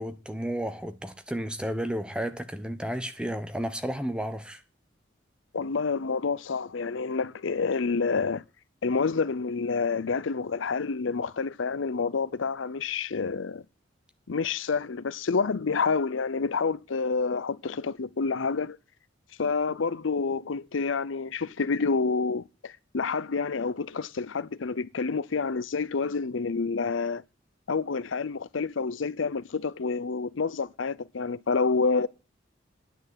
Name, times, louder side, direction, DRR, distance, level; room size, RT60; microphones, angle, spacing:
voice 1, 0.0-4.6, equal, 5° right, 1.0 m, -32 dB
voice 2, 5.5-8.4 8.8-13.6 14.3-18.8 19.4-27.2 27.7-32.1, left 4 dB, 85° left, 0.6 m, -28 dB
10.5 x 9.1 x 7.4 m
head